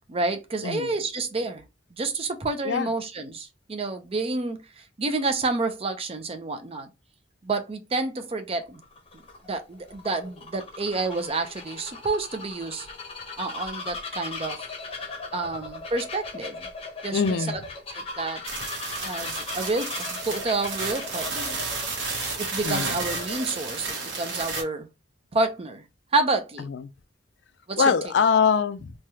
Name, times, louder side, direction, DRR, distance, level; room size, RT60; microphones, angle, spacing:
voice 1, 0.1-1.6 1.9-4.6 5.0-6.9 7.4-8.8 9.5-12.9 13.4-14.6 15.3-16.7 17.0-17.2 17.5-17.6 17.9-18.4 19.0-21.6 22.4-24.9 25.3-25.8 26.1-26.7 27.7-27.8, right 3 dB, 30° right, 0.5 m, -29 dB
Bird vocalization bird call bird song, 8.7-23.7, left 3 dB, 30° left, 0.7 m, -38 dB
voice 2, 17.1-17.6 22.6-23.0 26.6-26.9 27.8-28.9, left 6 dB, 65° left, 0.4 m, -23 dB
sound 1, 18.4-24.6, right 3 dB, 70° right, 1.1 m, -32 dB
3.2 x 2.2 x 2.7 m
head